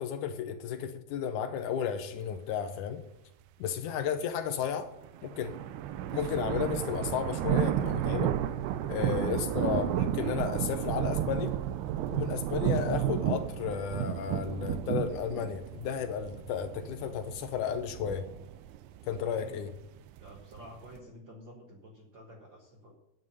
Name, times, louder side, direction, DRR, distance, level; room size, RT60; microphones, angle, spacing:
voice 1, 0.0-3.0 3.6-4.9 5.2-5.6 6.1-8.3 8.8-11.5 12.1-18.2 19.1-19.7, left 8 dB, 85° left, 8 dB, 1.8 m, -33 dB
sound 1, 5.0-21.0, right 11 dB, 85° right, 2.6 m, -32 dB
voice 2, 19.1-19.6 20.2-22.9, equal, 70° right, 1 dB, 1.1 m, -50 dB
9.8 x 9.2 x 5.5 m, 0.88 s
omnidirectional pair, 4.6 m